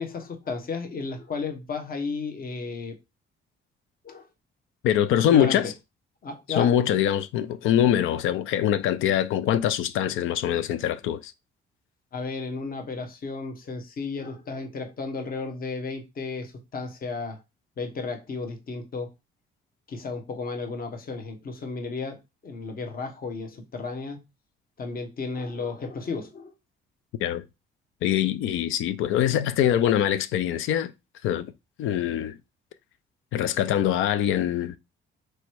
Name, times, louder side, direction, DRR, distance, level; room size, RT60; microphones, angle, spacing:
voice 1, 0.0-3.0 4.0-4.3 5.3-5.6 6.2-6.7 12.1-17.4 17.8-19.1 19.9-24.2 24.8-26.5, left 4 dB, 45° left, 1.2 m, -33 dB
voice 2, 4.8-5.7 6.5-11.3 27.2-27.4 28.0-30.9 31.2-31.5 31.8-32.4 33.3-34.8, left 10 dB, 85° left, 0.5 m, -23 dB
3.2 x 3.0 x 4.6 m
cardioid pair, 90°, 20 cm